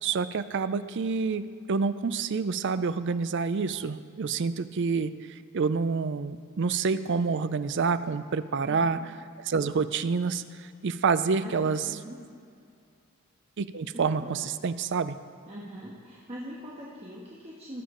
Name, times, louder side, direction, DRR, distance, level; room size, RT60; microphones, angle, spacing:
voice 1, 0.0-5.1 5.5-9.0 9.5-11.9 13.6-15.2, right 5 dB, 55° right, 13 dB, 0.5 m, -28 dB
voice 2, 8.6-9.0 11.4-12.2 13.9-14.4 15.5-17.8, equal, 30° right, -5 dB, 1.3 m, -42 dB
20.0 x 7.2 x 3.8 m, 2.3 s
head